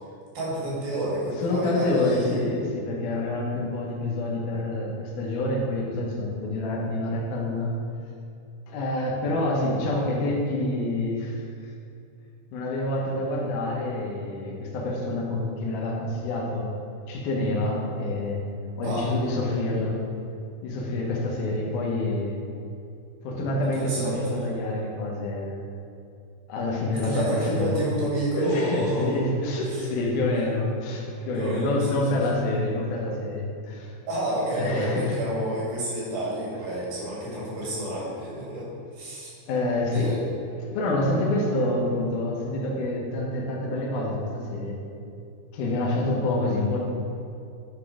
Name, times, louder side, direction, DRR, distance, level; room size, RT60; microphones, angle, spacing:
voice 1, 0.4-2.4 18.8-19.1 23.7-24.4 26.9-29.2 29.7-29.8 31.3-32.2 34.1-39.3 39.9-40.2, equal, 65° right, -6 dB, 3.7 m, -29 dB
voice 2, 1.4-7.8 8.7-11.4 12.5-16.7 17.1-18.4 18.8-20.0 20.6-22.3 23.2-25.6 26.5-27.8 28.4-33.9 34.6-35.1 39.5-40.1 40.7-44.8 45.5-46.8, left 2 dB, 70° left, -3 dB, 2.2 m, -27 dB
10.0 x 3.7 x 4.9 m, 2.5 s
omnidirectional pair, 4.6 m